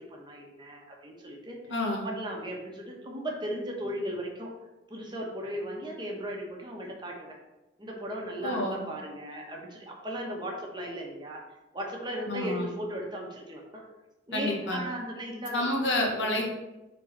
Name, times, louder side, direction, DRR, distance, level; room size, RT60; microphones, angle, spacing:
voice 1, 0.0-1.6 2.0-4.5 4.9-7.4 7.8-11.4 11.7-13.8 14.3-15.6 16.1-16.4, equal, 25° right, -1 dB, 1.1 m, -37 dB
voice 2, 1.7-2.1 8.4-8.8 12.3-12.7 14.3-14.8 15.5-16.5, left 1 dB, 75° left, 0 dB, 1.4 m, -29 dB
5.0 x 3.9 x 5.3 m, 1.0 s
head